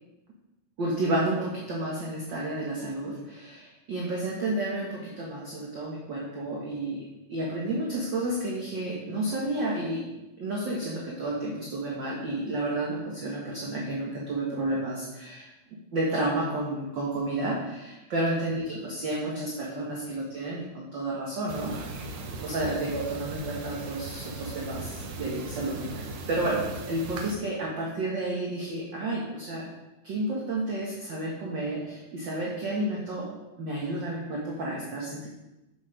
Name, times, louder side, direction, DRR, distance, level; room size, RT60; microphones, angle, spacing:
voice 1, 0.8-10.0 10.4-22.0 22.4-29.7 30.0-33.3 33.6-35.3, right 1 dB, 45° right, -4 dB, 1.7 m, -31 dB
sound 1, 21.5-27.3, right 3 dB, 75° right, 1.2 m, -38 dB
7.9 x 7.1 x 5.1 m, 1.0 s
omnidirectional pair, 3.6 m